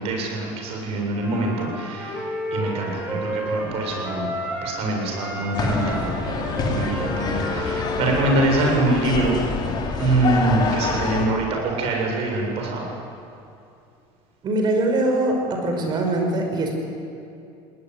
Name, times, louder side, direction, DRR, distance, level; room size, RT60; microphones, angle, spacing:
voice 1, 0.0-4.3 4.6-9.4 10.0-12.8, right 2 dB, 55° right, 0 dB, 7.6 m, -24 dB
Wind instrument woodwind instrument, 1.1-4.8 5.1-9.0, equal, 10° right, 4.8 m, -32 dB
sound 1, 5.5-11.3, left 4 dB, 35° left, 3.6 m, -26 dB
voice 2, 14.4-16.7, right 2 dB, 40° right, 3 dB, 5.4 m, -22 dB
21.0 x 19.0 x 9.8 m, 2.6 s
cardioid pair, 135°, 12 cm